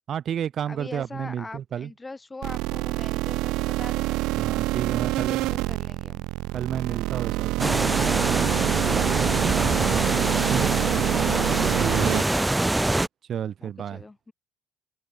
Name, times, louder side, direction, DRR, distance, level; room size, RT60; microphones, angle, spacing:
voice 1, 0.1-1.9 4.3-5.5 6.5-8.5 8.8-9.3 9.8-10.7 11.8-12.2 13.3-14.0, right 9 dB, 35° right, 6.4 m, -32 dB
voice 2, 0.7-4.6 5.0-6.3 8.8-9.6 10.5-11.0 13.6-14.3, left 3 dB, 10° left, 8.0 m, -42 dB
sound 1, 2.4-12.2, right 19 dB, 75° right, 2.3 m, -26 dB
sound 2, 7.6-13.1, right 2 dB, 5° right, 1.7 m, -24 dB
cardioid pair, 175°, 0 cm